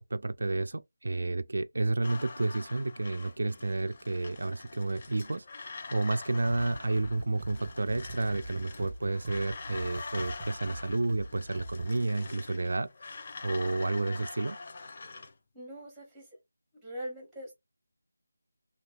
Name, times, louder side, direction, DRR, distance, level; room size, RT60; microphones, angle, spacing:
voice 1, 0.0-12.9 13.4-14.6, right 2 dB, 65° right, 0.3 m, -31 dB
sound 1, 2.0-15.3, left 3 dB, 40° left, 0.4 m, -45 dB
sound 2, 6.5-12.0, right 2 dB, 25° right, 0.6 m, -43 dB
voice 2, 15.5-16.3 16.7-17.5, equal, ahead, 1.1 m, -42 dB
3.2 x 2.8 x 2.4 m
figure-of-eight pair, 165°, 0 cm